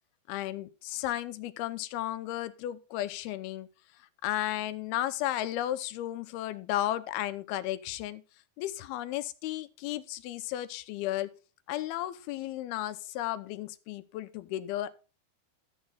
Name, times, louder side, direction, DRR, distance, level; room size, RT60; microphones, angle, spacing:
voice 1, 0.3-3.7 4.2-8.2 8.6-11.3 11.7-14.9, left 13 dB, 85° left, 13 dB, 2.6 m, -34 dB
13.5 x 7.5 x 4.0 m, 0.33 s
omnidirectional pair, 4.5 m